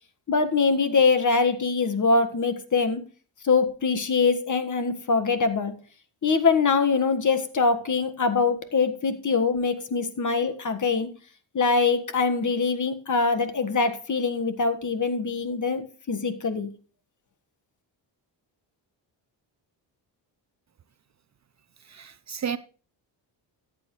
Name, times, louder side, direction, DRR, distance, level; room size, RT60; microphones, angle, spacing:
voice 1, 0.3-3.0 3.4-5.7 6.2-11.1 11.5-16.7, left 4 dB, 40° left, 1.6 m, -23 dB
voice 2, 21.9-22.6, right 7 dB, 40° right, 0.6 m, -32 dB
14.0 x 8.5 x 3.1 m
cardioid pair, 90°, 45 cm